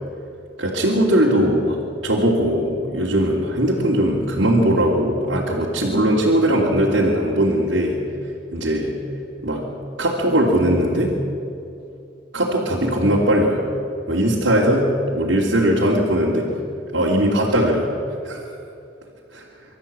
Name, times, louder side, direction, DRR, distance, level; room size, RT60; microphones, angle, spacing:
voice 1, 0.6-8.0 8.5-9.0 9.4-9.7 10.0-11.1 12.3-13.6 14.1-14.9 15.2-16.5 16.9-17.9 18.2-18.4 19.3-19.4, right 1 dB, 80° right, -5 dB, 3.2 m, -19 dB
25.0 x 13.5 x 8.9 m, 2.5 s
head